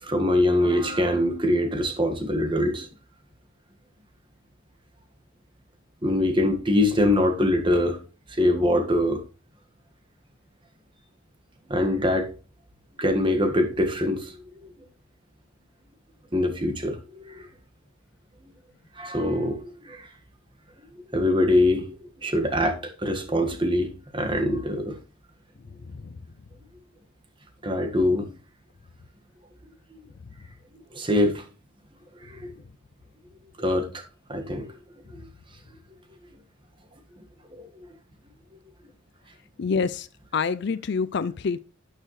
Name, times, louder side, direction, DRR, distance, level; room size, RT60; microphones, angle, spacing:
voice 1, 0.0-2.9 6.0-8.0 8.3-9.2 11.7-12.3 13.0-14.4 14.6-14.7 16.3-17.5 19.0-20.1 21.1-25.0 27.6-28.3 30.9-31.4 32.2-32.5 33.6-34.0 34.3-34.8 37.5-37.6, left 1 dB, 25° right, 1.6 m, -23 dB
voice 2, 39.6-40.1 40.3-41.6, left 5 dB, 55° left, 0.4 m, -26 dB
12.0 x 6.6 x 3.2 m
head